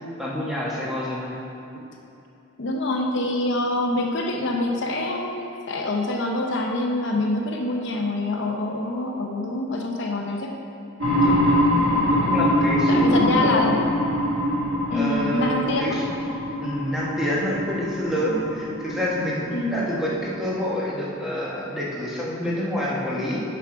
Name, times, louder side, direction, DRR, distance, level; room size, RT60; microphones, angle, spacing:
voice 1, 0.0-1.3 11.2-11.6 12.2-13.7 14.9-16.0 16.6-23.4, equal, ahead, -6 dB, 1.1 m, -27 dB
voice 2, 2.6-10.6 12.2-12.4 12.9-13.9 14.9-16.0 19.5-19.8, left 2 dB, 55° left, 1 dB, 0.6 m, -25 dB
sound 1, 11.0-20.6, equal, 75° right, 1.8 m, -24 dB
6.9 x 5.9 x 4.9 m, 2.9 s
head